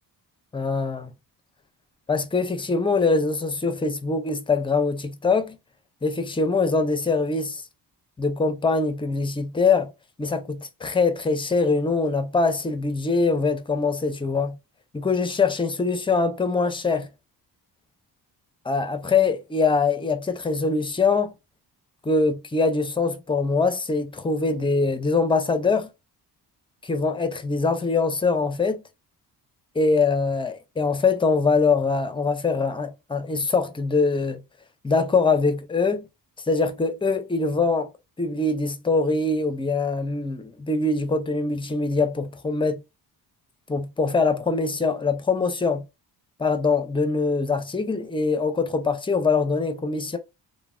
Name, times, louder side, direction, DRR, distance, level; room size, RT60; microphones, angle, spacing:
voice 1, 0.5-1.1 2.1-5.6 6.0-7.6 8.2-9.9 10.2-14.6 14.9-17.1 18.7-21.3 22.0-25.9 26.8-28.8 29.8-34.4 34.8-36.1 36.5-37.9 38.2-42.8 43.7-45.9 46.4-50.2, left 4 dB, 15° left, 0.4 m, -23 dB
3.1 x 2.1 x 2.3 m
cardioid pair, 115°, 42 cm